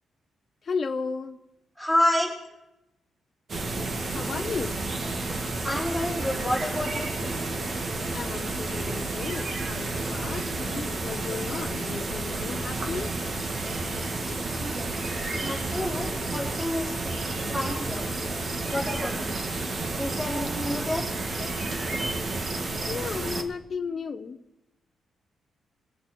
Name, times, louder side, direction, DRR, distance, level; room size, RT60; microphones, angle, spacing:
voice 1, 0.6-1.4 4.1-4.8 8.1-13.1 21.4-21.5 22.8-24.4, left 5 dB, 40° left, 4 dB, 0.9 m, -34 dB
voice 2, 1.7-2.4 5.6-7.1 14.6-14.7 15.4-17.1 17.5-18.0 18.7-19.3 20.0-21.0, left 1 dB, 5° right, -6 dB, 4.9 m, -29 dB
sound 1, 3.5-23.4, right 2 dB, 45° right, 1.8 m, -31 dB
24.5 x 8.9 x 4.3 m, 0.92 s
cardioid pair, 110°, 0 cm